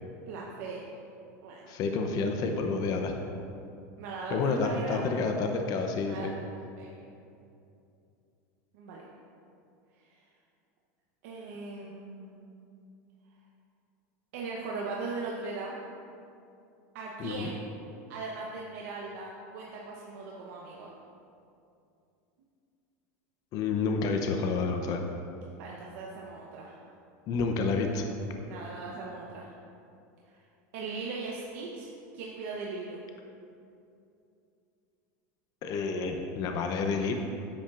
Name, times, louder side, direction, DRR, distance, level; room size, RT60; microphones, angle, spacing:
voice 1, 0.3-0.9 1.4-1.7 4.0-5.2 6.1-6.3 6.8-6.9 8.7-9.1 10.0-10.2 11.2-12.5 14.3-15.8 16.9-17.6 18.1-20.9 25.6-26.8 28.4-29.5 30.3-30.4 30.7-33.0, right 3 dB, 70° right, -3 dB, 1.0 m, -39 dB
voice 2, 1.7-3.1 4.3-6.3 17.2-17.5 23.5-25.1 27.3-28.1 35.6-37.1, left 4 dB, 45° left, 4 dB, 0.7 m, -29 dB
10.0 x 8.7 x 2.5 m, 2.6 s
supercardioid pair, 125°, 9 cm